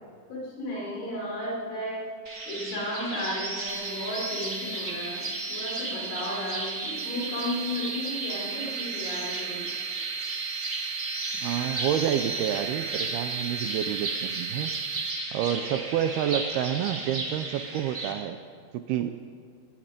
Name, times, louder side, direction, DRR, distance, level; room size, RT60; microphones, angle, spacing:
voice 1, 0.3-2.1 2.5-9.7, left 1 dB, 75° left, -3 dB, 7.9 m, -34 dB
sound 1, 2.2-18.1, right 2 dB, 30° right, 1.6 m, -35 dB
sound 2, 3.7-15.1, right 7 dB, 5° left, 2.3 m, -37 dB
voice 2, 11.4-14.7 15.3-18.4 18.7-19.1, right 10 dB, 85° right, 8 dB, 2.2 m, -29 dB
24.5 x 20.5 x 5.2 m, 2.1 s
omnidirectional pair, 5.4 m